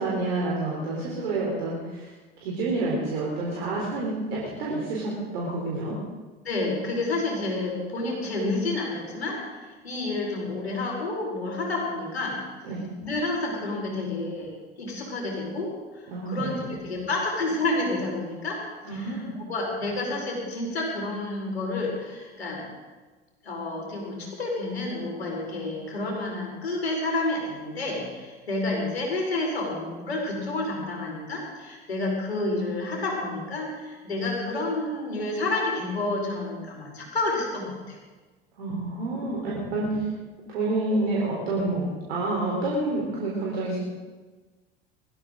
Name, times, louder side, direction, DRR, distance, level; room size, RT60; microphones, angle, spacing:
voice 1, 0.0-2.1 2.4-6.0 12.6-12.8 16.1-16.6 18.8-19.3 38.6-40.1 40.4-43.8, right 2 dB, 75° right, -4 dB, 4.0 m, -28 dB
voice 2, 6.4-12.4 13.0-14.5 14.8-18.6 18.9-19.2 19.5-22.6 23.4-38.0, left 2 dB, 90° left, -2 dB, 5.0 m, -29 dB
21.0 x 14.5 x 3.9 m, 1.3 s
hypercardioid pair, 80°, 31 cm